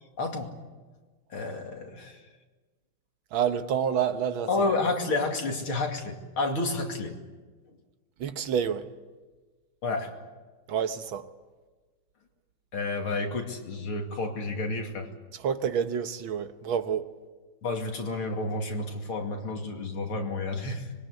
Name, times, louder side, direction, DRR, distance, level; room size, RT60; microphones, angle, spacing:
voice 1, 0.2-0.5 1.3-2.2 4.5-7.2 9.8-10.1 12.7-15.1 17.6-20.9, left 3 dB, 80° left, 3.4 m, -30 dB
voice 2, 3.3-4.5 8.2-8.9 10.7-11.3 15.3-17.1, right 8 dB, 70° right, 1.8 m, -28 dB
25.5 x 21.5 x 8.2 m
omnidirectional pair, 2.3 m